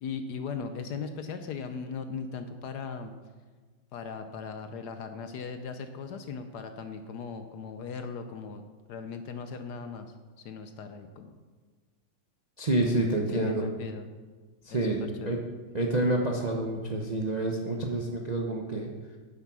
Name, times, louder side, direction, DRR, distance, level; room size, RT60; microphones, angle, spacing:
voice 1, 0.0-3.1 3.9-8.6 8.9-10.1 10.4-11.3 13.3-14.1 14.7-14.9 15.2-15.4, left 5 dB, 70° left, 8 dB, 1.0 m, -38 dB
voice 2, 12.6-13.7 14.6-15.4 15.7-18.9, right 2 dB, 90° right, 0 dB, 0.3 m, -28 dB
9.2 x 7.4 x 6.2 m, 1.4 s
omnidirectional pair, 2.3 m